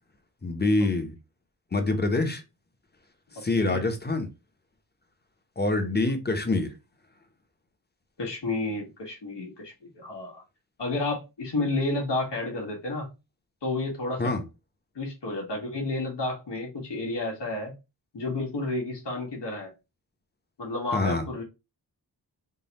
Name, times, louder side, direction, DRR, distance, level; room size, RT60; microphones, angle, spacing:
voice 1, 0.4-1.1 1.7-2.4 3.4-4.3 5.6-6.7 14.2-14.4 20.9-21.2, left 2 dB, 25° left, 0.8 m, -25 dB
voice 2, 8.2-10.4 10.8-13.1 13.6-14.3 15.0-17.7 18.1-19.7 20.6-21.4, left 2 dB, 85° left, 1.7 m, -31 dB
3.8 x 2.3 x 4.0 m
wide cardioid pair, 105°, 41 cm